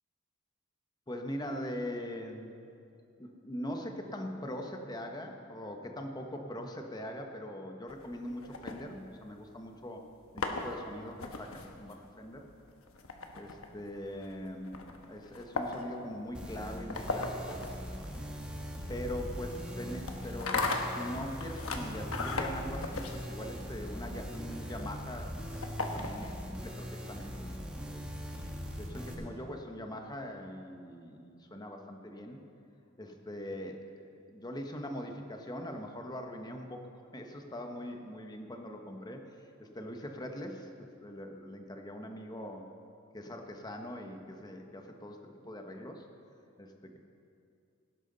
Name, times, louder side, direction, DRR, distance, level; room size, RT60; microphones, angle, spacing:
voice 1, 1.1-2.6 3.2-10.0 10.3-12.4 13.3-17.6 18.9-25.4 25.9-28.0 28.8-32.4 33.0-39.3 39.6-42.7 43.1-45.2 45.4-46.0 46.6-47.0, equal, 20° left, 3 dB, 1.0 m, -42 dB
sound 1, 7.9-9.5 10.1-26.5, left 3 dB, 90° left, 1.1 m, -39 dB
sound 2, 16.3-29.1, equal, 5° right, 1.2 m, -41 dB
17.0 x 10.5 x 4.0 m, 2.6 s
head